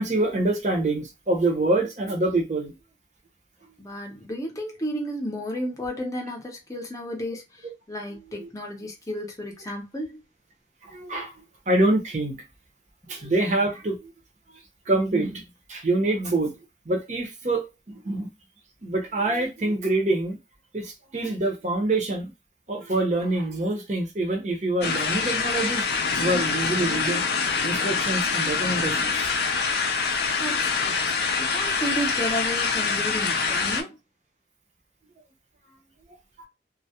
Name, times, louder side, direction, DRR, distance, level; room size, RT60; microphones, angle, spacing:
voice 1, 0.0-2.7 8.1-8.5 10.8-11.3 11.7-12.4 13.1-14.1 14.5-14.6 14.9-15.4 15.7-16.5 16.9-18.3 18.8-20.4 20.7-22.3 22.7-27.2 27.6-29.3, right 2 dB, 40° right, 0.6 m, -26 dB
voice 2, 3.8-10.2 30.4-34.0, equal, 20° left, 0.6 m, -33 dB
sound 1, 24.8-33.8, left 5 dB, 65° left, 0.4 m, -25 dB
2.2 x 2.0 x 2.7 m
head